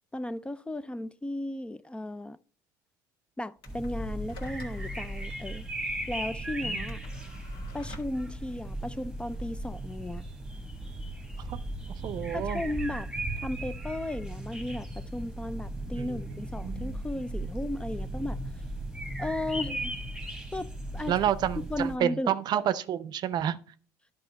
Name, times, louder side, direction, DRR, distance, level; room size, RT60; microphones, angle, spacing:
voice 1, 0.1-2.4 3.4-5.7 6.1-7.0 7.7-10.2 12.3-13.1 13.4-18.4 19.2-19.9 20.5-20.7 20.9-21.1 21.7-22.3, left 1 dB, 10° left, 0.4 m, -35 dB
sound 1, 3.6-12.1, left 3 dB, 60° left, 1.7 m, -54 dB
sound 2, 3.7-22.0, right 1 dB, 5° right, 1.2 m, -37 dB
voice 2, 12.0-12.6 16.0-17.1 21.1-23.6, right 10 dB, 55° right, 0.6 m, -30 dB
10.5 x 5.2 x 4.0 m
hypercardioid pair, 75°, 9 cm